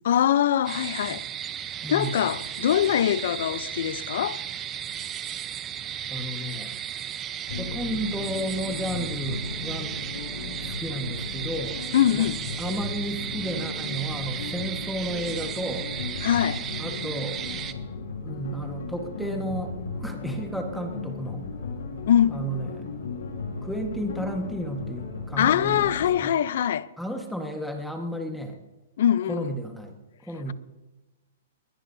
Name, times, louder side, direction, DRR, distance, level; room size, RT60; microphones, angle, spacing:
voice 1, 0.0-1.2 1.9-4.4 11.9-12.4 16.2-16.6 22.1-22.4 25.4-26.9 29.0-29.6, left 10 dB, 60° left, 0.7 m, -23 dB
sound 1, 0.6-17.7, right 10 dB, 20° right, 0.8 m, -35 dB
voice 2, 1.8-2.2 6.1-6.7 7.6-10.0 10.7-12.3 12.6-15.9 16.8-17.4 18.2-21.4 22.3-22.9 23.6-26.4 27.0-28.6 29.3-30.0 30.2-30.5, equal, ahead, 1.5 m, -33 dB
sound 2, 7.5-26.2, left 4 dB, 80° left, 6.6 m, -36 dB
21.0 x 20.5 x 2.8 m
hypercardioid pair, 160°, 0 cm